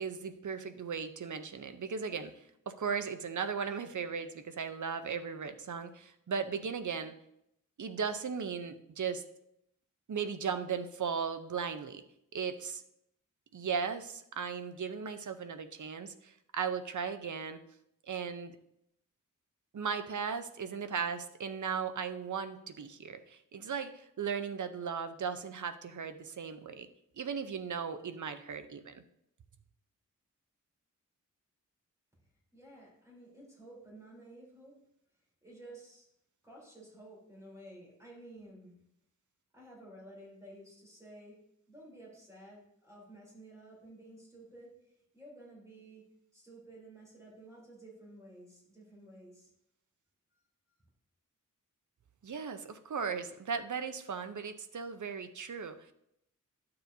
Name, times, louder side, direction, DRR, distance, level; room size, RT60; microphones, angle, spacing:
voice 1, 0.0-2.3 2.7-7.1 7.8-9.2 10.1-12.0 12.3-12.8 13.5-17.6 18.1-18.6 19.7-26.9 27.2-29.0 52.2-55.8, right 6 dB, 65° right, 10 dB, 0.7 m, -37 dB
voice 2, 32.5-34.8 35.4-36.1 36.4-38.8 39.5-41.4 41.7-46.1 46.3-49.5, right 1 dB, 10° right, -5 dB, 3.6 m, -53 dB
12.0 x 6.8 x 2.7 m, 0.78 s
wide cardioid pair, 110°, 33 cm